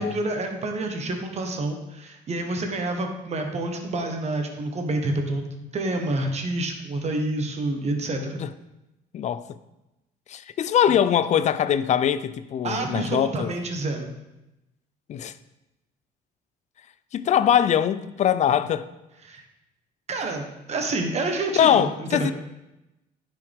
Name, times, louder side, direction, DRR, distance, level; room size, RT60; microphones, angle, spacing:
voice 1, 0.0-5.4 5.7-8.4 12.6-14.1 19.2-19.4 20.1-22.3, right 2 dB, 40° right, 1.2 m, -28 dB
voice 2, 10.3-13.5 15.1-15.3 17.1-18.9 21.5-22.3, left 9 dB, 45° left, 0.4 m, -22 dB
9.8 x 4.9 x 3.6 m
cardioid pair, 110°, 17 cm